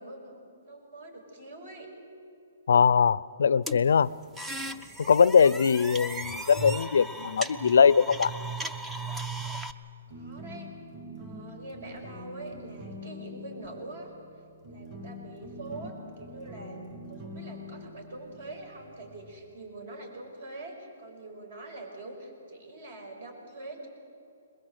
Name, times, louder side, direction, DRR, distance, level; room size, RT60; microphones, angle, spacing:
voice 1, 0.0-1.9 5.3-5.6 10.1-10.7 11.2-14.1 14.7-16.8 17.1-23.9, right 2 dB, 50° right, 3 dB, 5.7 m, -44 dB
voice 2, 2.7-4.2 5.0-8.3, left 6 dB, 75° left, 21 dB, 0.5 m, -21 dB
sound 1, 3.7-9.7, right 2 dB, 5° right, 0.6 m, -36 dB
sound 2, 10.1-19.4, left 1 dB, 25° right, 5.1 m, -45 dB
22.0 x 21.5 x 8.0 m, 2.7 s
hypercardioid pair, 165°, 0 cm